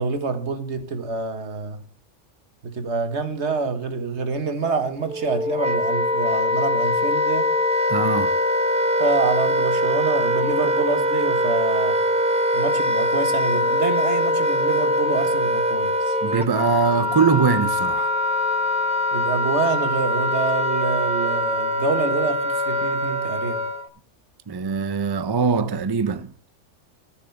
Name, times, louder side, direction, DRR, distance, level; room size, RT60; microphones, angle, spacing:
voice 1, 0.0-1.8 2.6-7.5 9.0-12.0 12.5-16.2 19.1-23.6, right 4 dB, 65° right, 1.7 m, -26 dB
Wind instrument woodwind instrument, 5.0-23.9, left 1 dB, 5° right, 1.1 m, -22 dB
voice 2, 7.9-8.4 16.2-18.1 24.5-26.3, right 5 dB, 35° right, 0.3 m, -22 dB
14.0 x 6.7 x 5.7 m
omnidirectional pair, 1.3 m